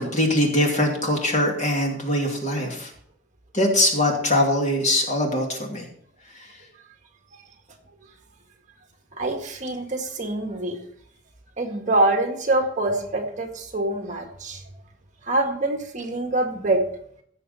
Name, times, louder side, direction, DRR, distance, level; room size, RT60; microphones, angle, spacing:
voice 1, 0.0-2.9 3.5-5.9 6.3-6.5, left 1 dB, 40° left, 0 dB, 2.6 m, -22 dB
voice 2, 9.1-10.8 11.6-14.6 15.2-16.8, right 2 dB, 40° right, 3 dB, 1.8 m, -25 dB
16.0 x 6.6 x 4.2 m, 0.65 s
head